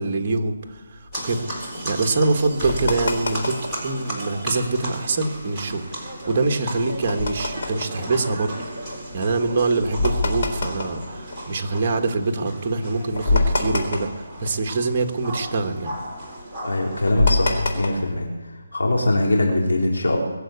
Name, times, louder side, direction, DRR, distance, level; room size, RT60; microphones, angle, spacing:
voice 1, 0.0-8.9 9.1-15.9, right 3 dB, 30° right, 4 dB, 1.5 m, -25 dB
sound 1, 0.7-3.9 4.3-4.4 4.6-4.9 5.3-12.0 12.5-12.6 12.8-15.0 15.2-18.2, left 3 dB, 45° left, 3.8 m, -26 dB
sound 2, 1.1-17.1, right 1 dB, 5° left, 4.0 m, -35 dB
voice 2, 16.6-18.4 18.7-20.2, left 1 dB, 90° left, 0 dB, 3.5 m, -22 dB
21.5 x 7.9 x 8.3 m, 1.3 s
hypercardioid pair, 170°, 0 cm